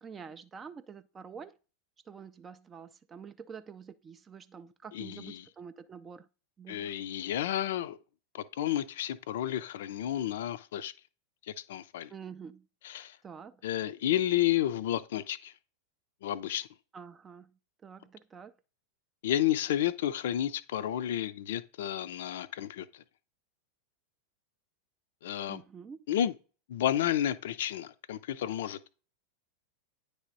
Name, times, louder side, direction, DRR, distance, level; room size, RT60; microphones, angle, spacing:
voice 1, 0.0-1.6 2.1-6.3 6.6-7.0 12.1-12.7 13.2-13.6 16.9-17.5 17.8-18.5 25.5-26.1, right 6 dB, 20° right, 0.3 m, -47 dB
voice 2, 4.9-5.4 6.7-8.0 8.3-10.9 11.5-12.1 12.8-13.2 13.6-15.5 16.2-16.7 19.2-23.0 25.2-25.6 26.1-26.3 26.7-28.8, left 11 dB, 55° left, 0.5 m, -31 dB
9.5 x 3.4 x 3.9 m
figure-of-eight pair, 90°, 0 cm